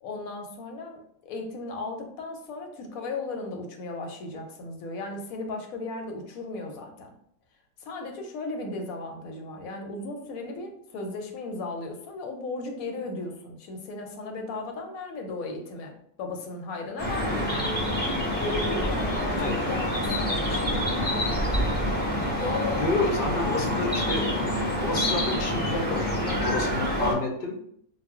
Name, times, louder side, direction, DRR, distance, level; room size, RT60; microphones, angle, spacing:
voice 1, 0.0-7.1 7.8-17.6 18.4-21.0 22.4-23.0, left 3 dB, 80° left, 3 dB, 1.0 m, -36 dB
sound 1, 17.0-27.1, equal, 10° left, 0.4 m, -27 dB
voice 2, 22.8-24.3 24.8-27.5, left 3 dB, 60° left, 1 dB, 0.6 m, -29 dB
2.3 x 2.0 x 3.4 m, 0.68 s
omnidirectional pair, 1.5 m